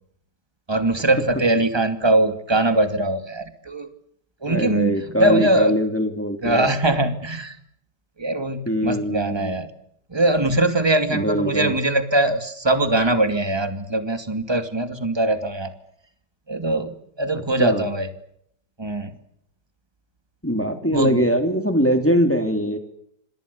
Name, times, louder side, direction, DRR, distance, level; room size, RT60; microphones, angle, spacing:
voice 1, 0.7-3.9 4.4-5.8 6.4-7.6 8.2-9.7 10.1-15.7 16.5-18.1 18.8-19.1 20.9-21.3, right 2 dB, 15° right, 8 dB, 2.4 m, -22 dB
voice 2, 4.5-6.7 8.7-9.5 11.1-11.7 17.6-17.8 20.4-22.8, equal, 5° left, 6 dB, 3.2 m, -22 dB
27.5 x 26.5 x 7.0 m, 0.72 s
omnidirectional pair, 1.9 m